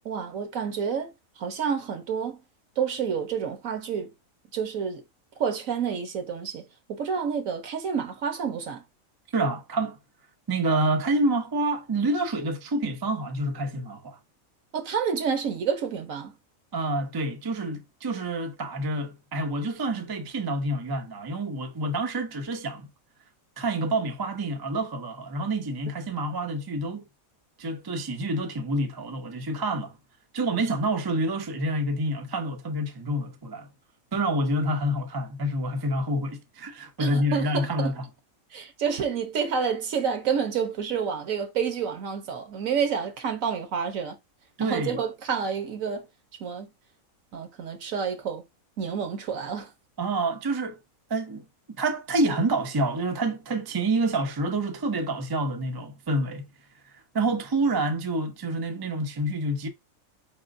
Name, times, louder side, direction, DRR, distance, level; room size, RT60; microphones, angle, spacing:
voice 1, 0.0-2.4 2.8-4.1 4.5-5.0 5.4-8.8 14.7-16.4 37.0-38.0 38.5-44.2 44.6-46.1 46.4-46.7 47.3-48.4 48.8-49.7, right 6 dB, 70° right, 1.3 m, -29 dB
voice 2, 9.3-10.0 10.5-14.2 16.7-22.9 23.6-27.1 27.6-29.9 30.3-33.7 34.1-37.9 44.6-45.0 50.0-50.8 51.1-51.4 51.8-56.5 57.1-59.7, right 1 dB, 30° right, 0.4 m, -28 dB
4.8 x 3.7 x 2.5 m
omnidirectional pair, 1.5 m